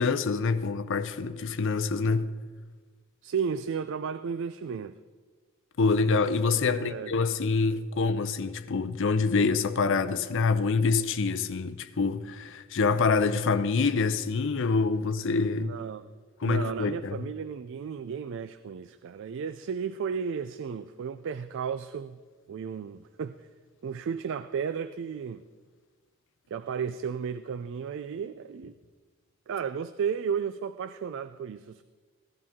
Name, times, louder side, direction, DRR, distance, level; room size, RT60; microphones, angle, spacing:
voice 1, 0.0-2.3 5.8-15.8 16.4-17.2, left 4 dB, 60° left, 0.6 m, -26 dB
voice 2, 3.2-5.0 6.6-7.1 15.5-16.1 16.4-22.2 22.5-23.5 23.8-25.4 26.5-28.7 29.5-31.8, right 6 dB, 60° right, 0.4 m, -33 dB
16.5 x 12.0 x 3.6 m
head